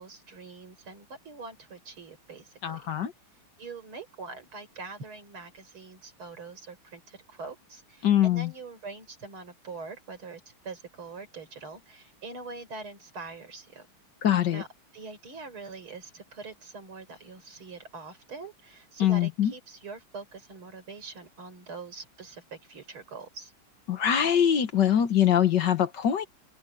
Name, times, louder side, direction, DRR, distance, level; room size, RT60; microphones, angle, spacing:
voice 1, 0.0-2.8 3.6-13.9 14.5-14.7 14.9-23.5, right 4 dB, 85° right, 5.9 m, -43 dB
voice 2, 2.6-3.1 8.0-8.5 14.2-14.6 19.0-19.5 23.9-26.2, left 10 dB, 60° left, 1.7 m, -23 dB
omnidirectional pair, 2.3 m